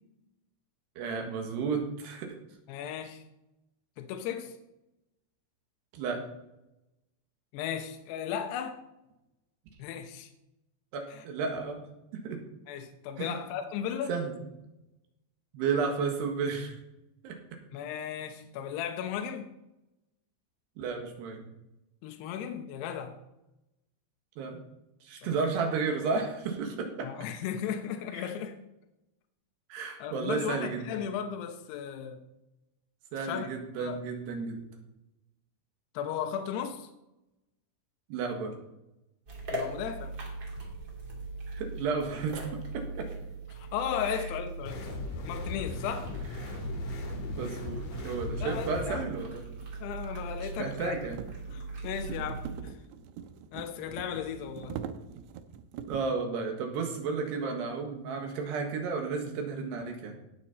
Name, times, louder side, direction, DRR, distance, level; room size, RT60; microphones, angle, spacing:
voice 1, 1.0-2.4 5.9-6.2 10.9-11.8 12.2-12.4 13.2-13.4 14.1-14.3 15.5-16.8 17.2-17.6 20.8-21.4 24.4-24.6 25.0-27.1 28.1-28.3 29.7-30.8 31.1-31.2 33.1-34.7 38.1-38.5 41.5-42.4 42.7-43.1 44.1-44.2 46.4-46.6 47.4-49.4 50.6-51.2 55.9-60.1, right 5 dB, 70° right, 3 dB, 3.4 m, -32 dB
voice 2, 2.7-3.2 4.0-4.6 7.5-8.8 9.8-10.3 11.1-11.2 12.7-14.2 17.7-19.5 22.0-23.2 25.2-25.4 27.0-28.6 30.0-32.2 33.2-33.5 33.8-34.0 35.9-36.9 39.5-40.1 43.5-44.9 45.2-46.1 48.4-49.0 49.8-51.0 51.5-52.8 53.5-54.8, left 8 dB, 75° left, 5 dB, 2.6 m, -36 dB
sound 1, 39.3-52.6, right 3 dB, 30° right, 2.5 m, -40 dB
sound 2, 44.7-49.0, left 3 dB, 60° left, 2.9 m, -38 dB
sound 3, 48.2-56.2, right 8 dB, 90° right, 2.4 m, -44 dB
18.0 x 6.3 x 4.2 m, 0.91 s
omnidirectional pair, 5.5 m